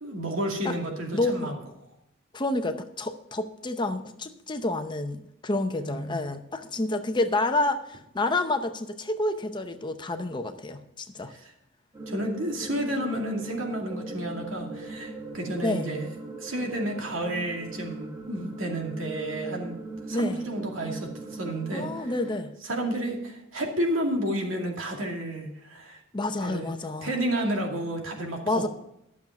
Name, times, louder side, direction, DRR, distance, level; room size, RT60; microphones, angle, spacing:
voice 1, 0.0-1.6 5.7-6.2 11.3-11.5 12.1-16.1 16.4-19.7 20.1-22.1 22.6-26.0 26.4-26.7 27.0-28.7, right 1 dB, 85° right, 1 dB, 2.4 m, -31 dB
voice 2, 1.1-1.5 2.3-11.3 15.6-15.9 20.1-20.4 21.7-22.5 26.1-27.1 28.5-28.7, left 2 dB, 25° left, 8 dB, 0.7 m, -29 dB
sound 1, 11.9-22.4, right 2 dB, 20° right, 1.5 m, -40 dB
12.0 x 7.3 x 5.9 m, 0.82 s
head